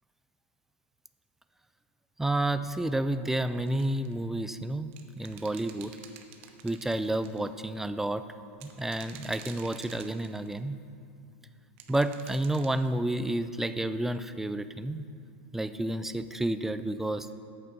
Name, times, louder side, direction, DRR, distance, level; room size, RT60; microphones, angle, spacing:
voice 1, 2.2-6.0 6.6-8.2 8.6-10.8 11.9-15.1 15.5-17.3, right 1 dB, 5° right, 11 dB, 0.3 m, -30 dB
sound 1, 3.7-4.1 4.9-7.4 8.5-10.6 11.8-12.7, right 9 dB, 60° right, 0.9 m, -49 dB
8.6 x 6.5 x 6.0 m, 2.5 s
hypercardioid pair, 120°, 7 cm